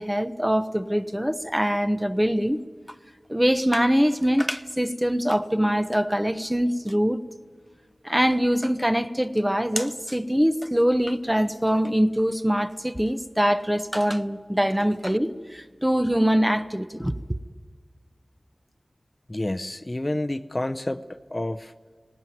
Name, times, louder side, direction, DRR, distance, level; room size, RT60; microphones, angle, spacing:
voice 1, 0.0-2.6 3.3-7.2 8.0-17.2, equal, 10° right, 0.9 m, -23 dB
voice 2, 19.3-21.0 21.3-21.7, left 1 dB, 30° left, 0.7 m, -29 dB
18.5 x 18.0 x 9.3 m
wide cardioid pair, 55°, 0 cm